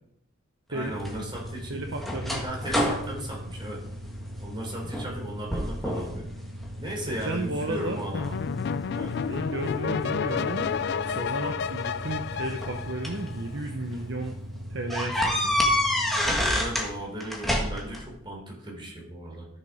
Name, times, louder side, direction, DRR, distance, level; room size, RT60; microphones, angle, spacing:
voice 1, 0.7-1.8 2.4-3.8 4.4-6.3 6.8-8.4 8.9-9.2 16.5-19.5, right 1 dB, 20° right, -1 dB, 3.7 m, -36 dB
sound 1, 0.8-16.9, equal, 85° right, 1.5 m, -39 dB
sound 2, 1.0-4.4 4.9-5.2 5.5-6.2 6.6-7.3 7.9-9.4 10.5-10.7 11.9-13.3 13.8-14.0 14.3-14.4 14.9-16.9 17.2-18.0, left 1 dB, ahead, 1.5 m, -28 dB
voice 2, 1.7-2.4 7.1-8.0 9.3-10.7 11.0-14.4 14.7-15.7, right 2 dB, 55° right, 4 dB, 0.9 m, -33 dB
sound 3, 8.1-13.6, left 6 dB, 50° left, 0.3 m, -30 dB
13.5 x 7.2 x 4.9 m, 0.76 s
head